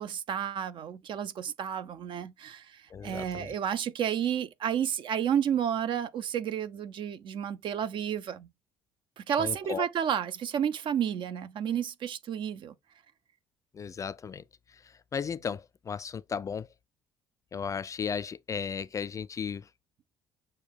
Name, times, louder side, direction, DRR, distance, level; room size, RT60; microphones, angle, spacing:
voice 1, 0.0-8.5 9.2-12.7, right 9 dB, 45° right, 0.5 m, -31 dB
voice 2, 2.9-3.5 9.4-9.9 13.7-14.4 14.7-16.7 17.5-19.7, left 6 dB, 30° left, 0.3 m, -35 dB
6.5 x 2.2 x 3.6 m
figure-of-eight pair, 50°, 11 cm